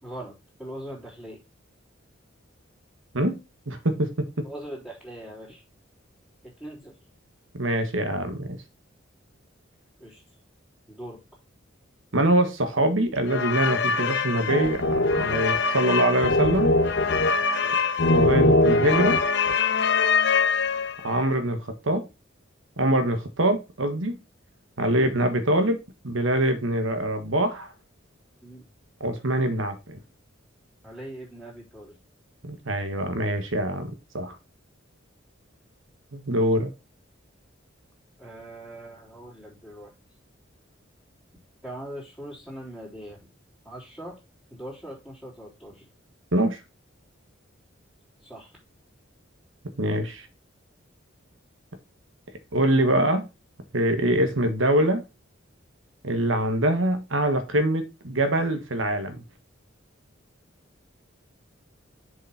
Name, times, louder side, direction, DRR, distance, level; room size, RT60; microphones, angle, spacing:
voice 1, 0.0-1.4 4.4-5.6 6.6-6.9 10.0-10.2 10.9-11.2 17.6-17.8 24.9-25.2 28.4-28.6 30.8-31.9 38.2-39.9 41.6-43.2 43.6-44.2 44.5-45.9 48.2-48.5 52.8-53.0, right 1 dB, ahead, 3.5 m, -41 dB
voice 2, 3.7-4.2 7.5-8.6 12.1-16.7 18.1-19.2 21.0-22.0 22.8-24.2 24.8-25.8 26.0-27.7 29.0-30.0 32.4-34.3 36.1-36.7 46.3-46.6 49.8-50.2 52.5-53.3 53.7-55.0 56.0-59.2, right 1 dB, 80° right, 1.5 m, -24 dB
sound 1, 13.3-21.1, left 3 dB, 60° left, 1.0 m, -22 dB
7.0 x 5.5 x 4.3 m
head